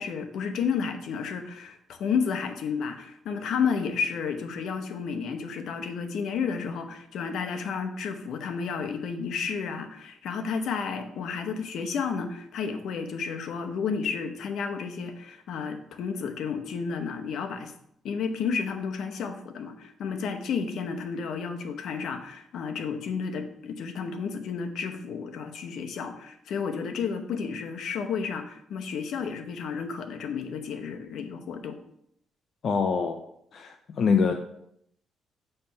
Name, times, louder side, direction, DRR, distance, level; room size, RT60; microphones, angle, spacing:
voice 1, 0.0-17.7 18.0-31.8, left 6 dB, 75° left, 6 dB, 0.9 m, -31 dB
voice 2, 32.6-33.2 33.5-34.3, left 5 dB, 55° left, 5 dB, 0.6 m, -24 dB
8.7 x 3.3 x 5.6 m, 0.72 s
cardioid pair, 90°, 0 cm